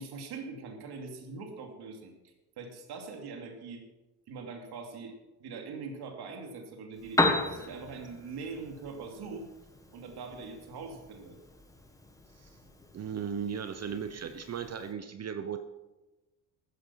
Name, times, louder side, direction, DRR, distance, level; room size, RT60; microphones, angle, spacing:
voice 1, 0.0-3.8 4.3-9.5 9.9-11.4, right 4 dB, 70° right, 4 dB, 2.7 m, -42 dB
Piano, 6.9-14.9, left 2 dB, 10° left, 1.8 m, -36 dB
voice 2, 12.9-15.7, right 7 dB, 40° right, 9 dB, 0.9 m, -36 dB
15.0 x 9.0 x 5.8 m, 1.1 s
cardioid pair, 110°, 41 cm